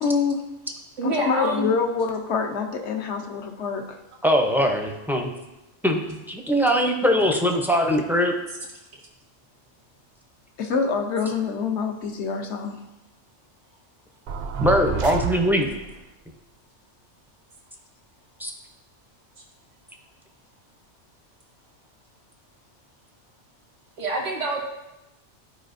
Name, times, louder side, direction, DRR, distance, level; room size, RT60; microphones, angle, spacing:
voice 1, 0.0-0.4 1.0-4.0 10.6-12.8, left 5 dB, 70° left, 4 dB, 1.1 m, -26 dB
voice 2, 1.0-1.7 24.0-24.6, right 2 dB, 90° right, -1 dB, 1.6 m, -26 dB
voice 3, 4.2-5.3 5.8-8.3 14.6-15.7 18.4-18.5, equal, 5° right, 2 dB, 0.4 m, -21 dB
sound 1, 14.3-16.0, right 6 dB, 65° right, 0.7 m, -29 dB
12.5 x 4.8 x 2.6 m, 0.96 s
omnidirectional pair, 1.2 m